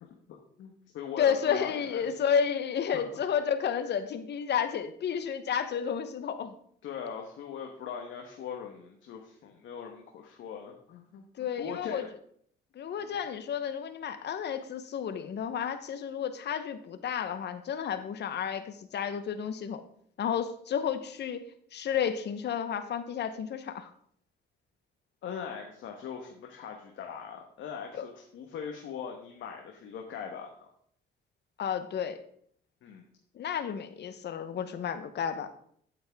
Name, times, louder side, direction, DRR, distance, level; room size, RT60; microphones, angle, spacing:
voice 1, 0.0-2.1 2.9-3.0 6.8-11.2 11.6-12.1 13.0-13.2 25.2-30.7 32.8-33.0, left 7 dB, 75° left, 2 dB, 1.2 m, -41 dB
voice 2, 1.2-6.6 11.4-12.1 12.7-19.8 20.2-21.4 21.7-23.9 28.0-28.1 31.6-32.2 33.3-35.5, left 8 dB, 60° left, 10 dB, 0.9 m, -31 dB
8.7 x 8.2 x 3.5 m, 0.63 s
cardioid pair, 90°, 20 cm